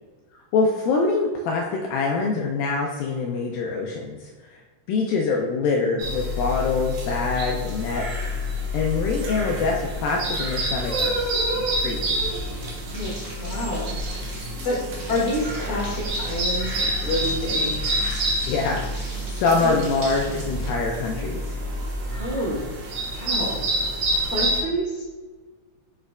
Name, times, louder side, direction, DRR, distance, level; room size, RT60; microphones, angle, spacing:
voice 1, 0.5-4.6 4.9-8.1 8.7-12.3 18.4-18.9 19.2-21.6, left 4 dB, 85° left, 0 dB, 2.0 m, -25 dB
sound 1, 6.0-24.6, equal, 65° right, 2.4 m, -28 dB
sound 2, 7.8-13.1, right 1 dB, 80° right, 3.7 m, -33 dB
sound 3, 12.9-20.7, right 1 dB, 45° right, 1.1 m, -39 dB
voice 2, 13.4-13.9 14.6-14.8 15.1-17.7 19.6-19.8 22.2-22.6 23.1-23.6 24.1-25.1, left 1 dB, 45° left, -5 dB, 2.0 m, -28 dB
6.6 x 6.5 x 2.3 m, 1.3 s
omnidirectional pair, 4.7 m